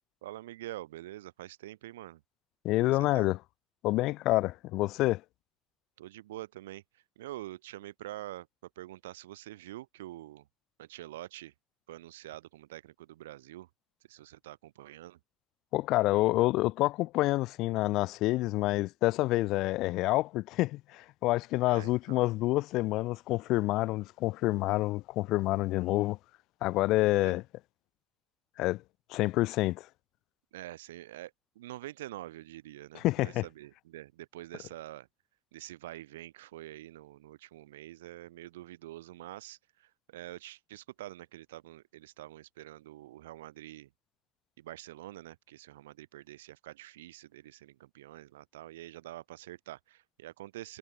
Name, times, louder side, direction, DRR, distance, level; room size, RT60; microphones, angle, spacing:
voice 1, 0.2-2.2 2.9-3.3 6.0-8.5 8.7-10.5 10.8-11.5 11.9-13.7 14.1-15.2 21.7-22.3 27.2-27.4 30.5-35.1 35.5-43.9 44.6-50.8, right 15 dB, 80° right, 6.7 m, -46 dB
voice 2, 2.6-3.4 3.8-5.2 15.7-26.2 26.6-27.4 28.6-28.8 29.1-29.9 32.9-33.4, left 18 dB, 65° left, 2.1 m, -28 dB
hypercardioid pair, 60°, 0 cm